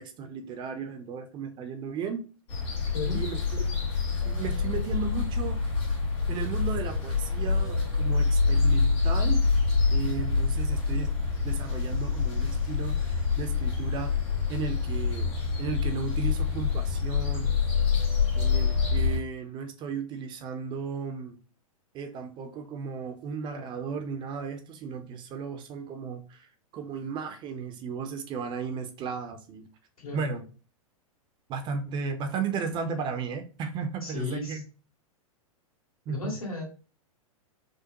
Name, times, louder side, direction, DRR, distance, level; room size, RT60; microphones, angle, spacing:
voice 1, 0.0-2.3 3.1-3.7 4.2-5.7 6.3-9.5 9.9-11.1 11.4-14.2 14.5-15.3 15.6-17.5 18.4-21.4 21.9-29.7 30.1-30.4 31.5-34.6 36.1-36.3, right 5 dB, 25° right, 0.5 m, -35 dB
sound 1, 2.5-19.2, left 5 dB, 45° left, 1.8 m, -26 dB
voice 2, 2.9-3.2 30.0-30.3 34.0-34.6 36.1-36.6, left 3 dB, 75° left, 2.0 m, -34 dB
5.0 x 2.1 x 2.9 m
figure-of-eight pair, 100°, 18 cm